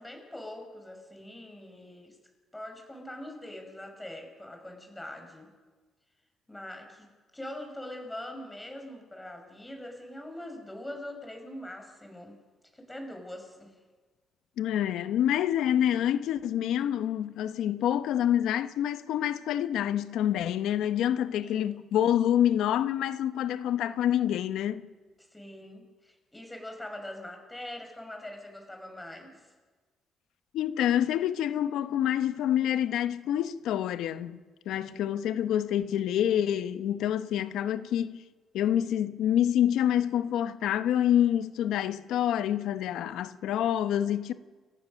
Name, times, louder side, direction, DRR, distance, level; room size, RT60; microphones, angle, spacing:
voice 1, 0.0-2.2 2.5-5.5 6.5-12.4 12.7-13.7 21.4-21.8 25.3-29.5 34.8-35.0, left 1 dB, 10° left, 5.5 m, -43 dB
voice 2, 14.6-24.9 30.5-38.2 38.5-44.3, left 10 dB, 85° left, 1.0 m, -27 dB
29.5 x 15.0 x 6.5 m
cardioid pair, 90°, 0 cm